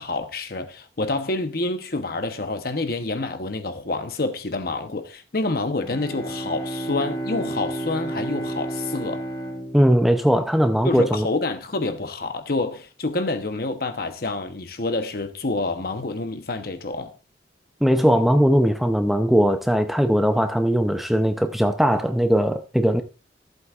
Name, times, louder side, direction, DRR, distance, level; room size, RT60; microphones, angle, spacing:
voice 1, 0.0-9.3 10.8-17.1, left 2 dB, 55° left, 1.0 m, -28 dB
Bowed string instrument, 5.8-11.0, right 1 dB, 25° left, 1.8 m, -32 dB
voice 2, 9.7-11.3 17.8-23.0, equal, ahead, 0.6 m, -19 dB
14.5 x 7.9 x 2.5 m
head